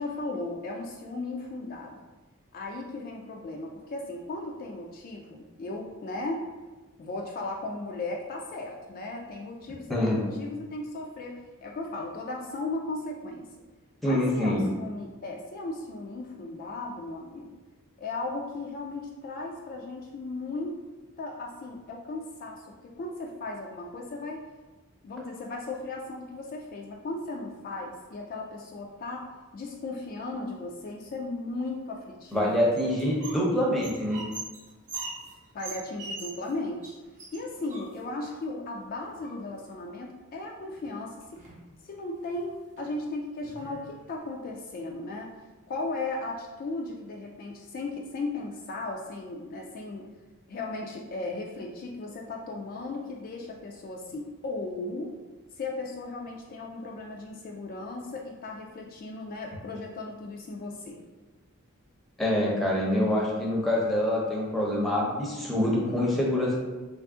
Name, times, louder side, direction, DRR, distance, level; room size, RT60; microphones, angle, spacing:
voice 1, 0.0-2.0 2.5-6.4 7.0-13.5 14.0-17.5 18.0-20.8 21.2-24.4 25.0-29.3 29.5-32.7 35.5-37.0 37.3-41.4 41.8-45.3 45.7-50.1 50.5-55.1 55.6-61.0, left 2 dB, 40° left, 0 dB, 0.3 m, -36 dB
voice 2, 9.9-10.2 14.0-14.7 32.3-34.2 62.2-66.6, left 1 dB, ahead, -4 dB, 0.7 m, -25 dB
sound 1, 32.3-33.5 33.7-36.5 36.8-36.9 37.2-38.3 39.0-39.7 40.8-40.9 41.2-41.7 42.2-42.4 42.8-42.9 43.4-44.2, right 3 dB, 35° right, 0.7 m, -42 dB
3.2 x 2.4 x 3.6 m, 1.2 s
head